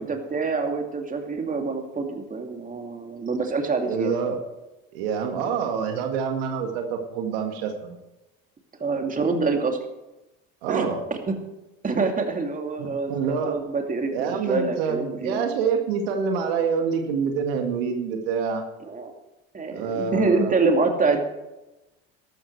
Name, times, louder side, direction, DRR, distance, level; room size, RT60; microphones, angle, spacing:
voice 1, 0.0-4.1 8.8-9.8 10.7-10.9 11.3-11.4 11.8-15.4 18.9-19.1 19.5-21.2, right 4 dB, 30° right, 4 dB, 2.5 m, -26 dB
voice 2, 3.9-4.4 4.9-8.0 10.6-11.0 12.8-13.6 14.1-18.6 19.7-20.8, right 6 dB, 90° right, 4 dB, 2.0 m, -26 dB
13.0 x 12.5 x 4.7 m, 0.99 s
supercardioid pair, 90°, 29 cm